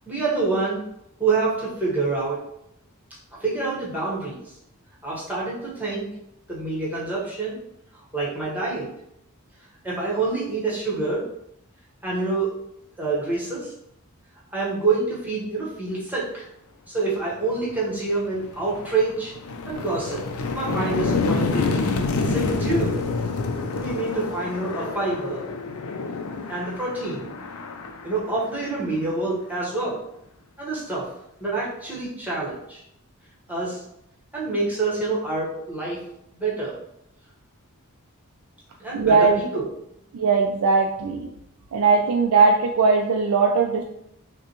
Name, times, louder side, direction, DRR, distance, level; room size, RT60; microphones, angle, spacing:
voice 1, 0.1-0.8 1.2-2.4 3.4-4.4 5.0-6.1 6.5-7.6 8.1-8.9 9.8-11.2 12.0-12.5 13.0-13.7 14.5-16.5 16.9-19.3 19.6-20.2 20.5-21.8 22.2-23.0 23.8-25.4 26.5-27.3 28.0-30.0 30.6-31.1 31.4-32.8 33.5-33.8 34.3-36.0 36.3-36.8 38.8-39.6, right 3 dB, 5° right, -6 dB, 1.1 m, -27 dB
sound 1, 17.7-17.8 18.3-29.0, left 3 dB, 80° left, 0.5 m, -28 dB
voice 2, 38.9-39.4 40.1-41.3 41.7-43.8, right 4 dB, 80° right, 2 dB, 0.4 m, -19 dB
5.8 x 2.2 x 2.9 m, 0.78 s
head